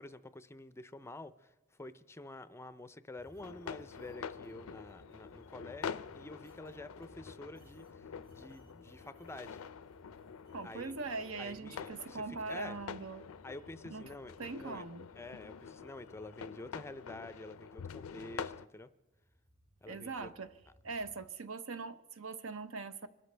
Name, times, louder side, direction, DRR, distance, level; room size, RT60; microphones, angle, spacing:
voice 1, 0.0-9.6 10.6-10.9 11.4-12.8 13.4-14.9 15.2-18.9 19.8-20.3, left 2 dB, 10° left, 0.5 m, -49 dB
sound 1, 3.2-17.2 19.0-21.3, equal, 30° right, 3.5 m, -63 dB
sound 2, 3.4-18.7, left 6 dB, 80° left, 0.5 m, -47 dB
voice 2, 10.5-13.3 13.9-14.1 14.4-15.1 19.9-20.5 20.8-23.1, right 4 dB, 70° right, 0.8 m, -41 dB
25.0 x 13.0 x 3.3 m
head